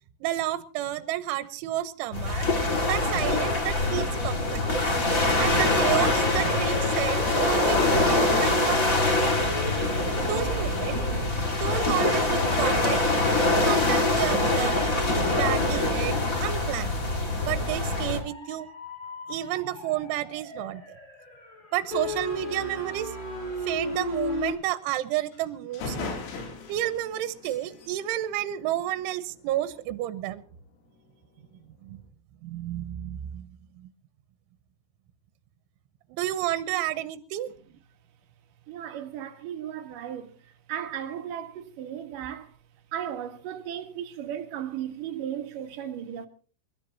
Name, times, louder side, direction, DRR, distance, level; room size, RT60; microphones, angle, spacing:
voice 1, 0.2-2.5 2.9-4.8 5.3-9.2 10.2-11.1 11.5-13.0 13.6-16.9 17.4-18.7 19.3-21.0 21.7-23.1 23.6-26.2 26.7-30.4 31.8-32.0 32.4-33.9 36.1-37.5, right 14 dB, 80° right, 3.2 m, -31 dB
sound 1, 2.1-18.2, left 2 dB, 55° left, 0.9 m, -24 dB
sound 2, 5.4-11.9 12.4-24.5, left 2 dB, 10° left, 4.0 m, -37 dB
sound 3, 25.3-25.4 25.7-29.2, left 4 dB, 90° left, 5.3 m, -39 dB
voice 2, 38.7-40.3 40.7-42.5 42.9-46.3, right 10 dB, 60° right, 2.5 m, -35 dB
28.5 x 13.5 x 2.9 m
omnidirectional pair, 5.6 m